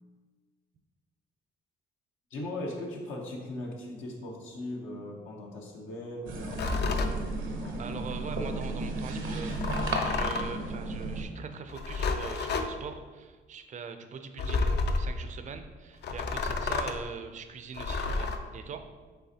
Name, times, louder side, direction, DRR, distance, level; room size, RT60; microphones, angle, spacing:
voice 1, 2.3-7.1 7.6-7.9, left 1 dB, 85° left, -1 dB, 0.9 m, -39 dB
sound 1, 6.3-11.2, right 2 dB, 80° right, 0.7 m, -34 dB
sound 2, 6.5-7.2 9.5-10.6 11.7-12.7 14.4-15.1 16.0-17.0 17.8-18.4, left 3 dB, 60° left, 0.4 m, -30 dB
voice 2, 7.8-14.7 15.0-18.8, right 6 dB, 40° right, 8 dB, 0.4 m, -42 dB
5.5 x 3.4 x 2.8 m, 1.4 s
cardioid pair, 90°, 20 cm